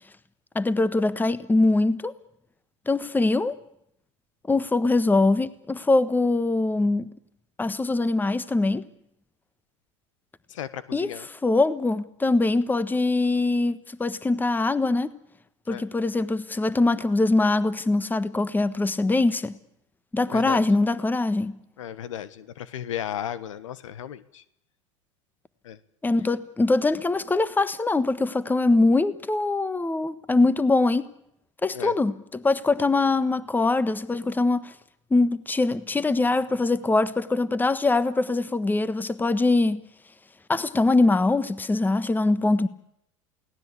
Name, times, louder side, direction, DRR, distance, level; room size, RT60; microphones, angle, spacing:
voice 1, 0.5-2.1 2.9-3.5 4.5-7.1 7.6-8.9 10.9-11.1 11.4-15.2 15.7-19.6 20.1-21.5 26.0-31.1 31.6-34.7 35.1-39.8 40.5-42.7, left 2 dB, 10° left, 1.4 m, -23 dB
voice 2, 10.5-11.3 15.7-15.8 20.3-20.7 21.8-24.4 25.6-25.8 31.7-31.9, left 10 dB, 75° left, 1.4 m, -35 dB
28.5 x 18.0 x 8.5 m
hypercardioid pair, 90°, 16 cm